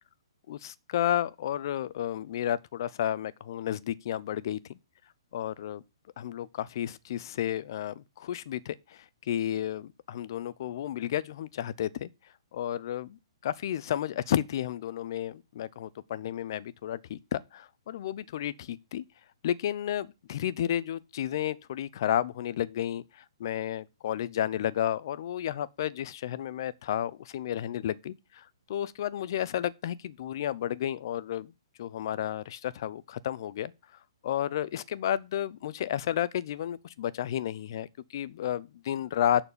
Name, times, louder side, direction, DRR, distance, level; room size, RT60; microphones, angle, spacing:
voice 1, 0.5-4.8 5.3-5.8 6.2-12.1 12.5-19.0 19.4-31.5 31.8-39.4, left 11 dB, 50° left, 0.7 m, -32 dB
11.0 x 4.4 x 6.9 m
hypercardioid pair, 155°, 3 cm